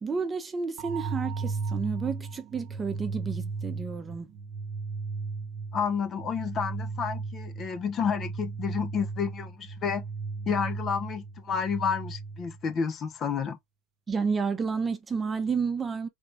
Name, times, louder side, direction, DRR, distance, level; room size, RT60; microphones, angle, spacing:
voice 1, 0.0-4.3 14.1-16.1, right 5 dB, 25° right, 0.8 m, -31 dB
sound 1, 0.8-12.7, right 4 dB, 55° right, 0.9 m, -36 dB
voice 2, 5.7-10.0 10.5-13.6, left 6 dB, 40° left, 0.9 m, -30 dB
3.9 x 3.6 x 3.2 m
hypercardioid pair, 90°, 0 cm